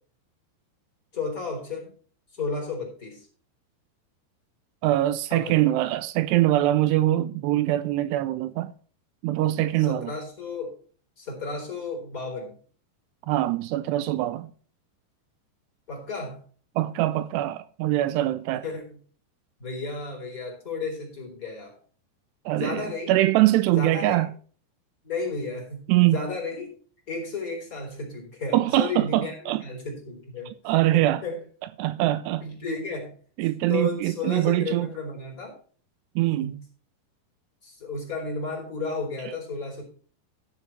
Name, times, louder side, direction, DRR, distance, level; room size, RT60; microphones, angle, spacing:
voice 1, 1.1-1.9 2.3-3.3 5.3-5.5 9.9-10.7 11.2-12.6 15.9-16.4 18.6-18.8 19.6-21.8 22.5-23.1 23.7-24.2 25.0-26.7 27.1-31.4 32.4-33.1 33.7-35.5 36.3-36.6 37.6-39.8, left 3 dB, 20° left, 3.8 m, -33 dB
voice 2, 4.8-8.7 9.2-10.1 13.3-14.5 16.8-18.6 22.5-24.3 25.9-26.2 28.5-29.6 30.6-31.2 31.8-32.5 33.4-34.9 36.2-36.5, right 15 dB, 80° right, 2.5 m, -23 dB
14.5 x 6.9 x 4.5 m
omnidirectional pair, 5.2 m